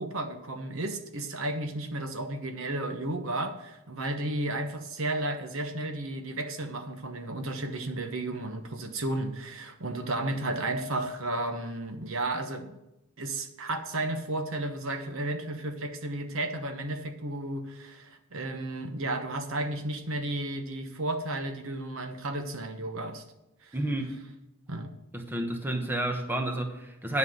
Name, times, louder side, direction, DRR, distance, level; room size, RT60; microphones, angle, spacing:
voice 1, 0.0-12.8 13.2-23.2 23.6-23.8 24.7-24.9, right 2 dB, 65° right, 6 dB, 1.1 m, -33 dB
voice 2, 23.7-24.1 25.1-27.2, right 1 dB, 10° right, 3 dB, 1.1 m, -30 dB
10.5 x 5.7 x 7.7 m, 0.91 s
head